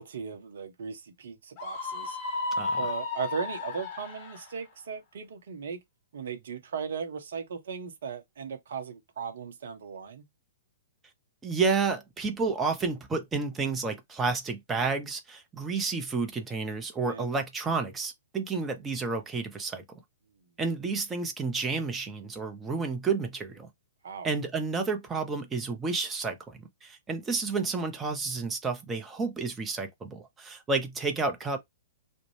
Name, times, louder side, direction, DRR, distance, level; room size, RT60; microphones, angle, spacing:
voice 1, 0.0-2.2 2.8-5.8 6.1-10.2 17.1-17.3 24.0-24.3, right 6 dB, 60° right, 0.7 m, -37 dB
Screaming, 1.6-4.5, left 3 dB, 35° left, 1.2 m, -33 dB
voice 2, 2.6-2.9 11.4-19.8 20.6-23.7 24.2-31.6, right 4 dB, 15° right, 0.7 m, -30 dB
2.4 x 2.1 x 3.2 m
figure-of-eight pair, 115°, 0 cm